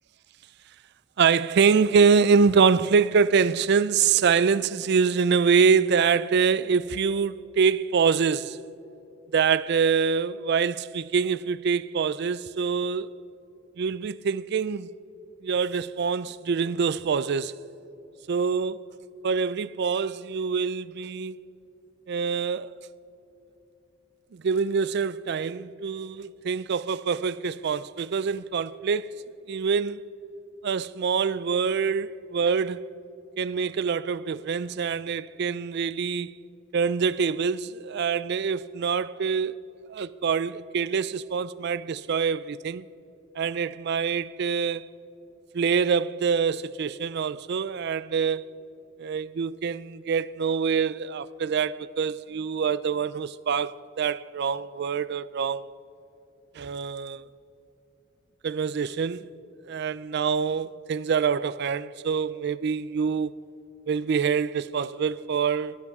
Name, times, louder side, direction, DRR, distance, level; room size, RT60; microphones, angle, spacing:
voice 1, 1.2-8.6 9.3-13.1 13.8-14.9 15.4-17.5 18.3-18.8 19.2-21.4 22.1-22.7 24.3-29.1 29.5-30.0 30.6-32.8 33.4-36.3 36.7-39.5 39.9-42.9 43.4-44.9 45.5-48.4 49.0-55.7 56.6-57.2 58.4-59.2 59.7-63.3 63.9-65.8, right 6 dB, 55° right, 0.4 m, -25 dB
22.0 x 18.0 x 3.6 m
head